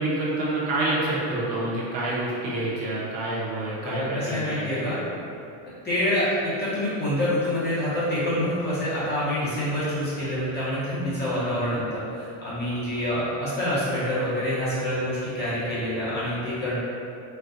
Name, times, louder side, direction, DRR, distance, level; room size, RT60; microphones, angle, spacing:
voice 1, 0.0-5.1 11.3-11.8, right 2 dB, 55° right, -7 dB, 1.0 m, -28 dB
voice 2, 3.8-5.0 5.8-16.8, left 1 dB, 20° left, -11 dB, 0.8 m, -27 dB
4.3 x 2.3 x 2.5 m, 2.6 s
cardioid pair, 170°, 46 cm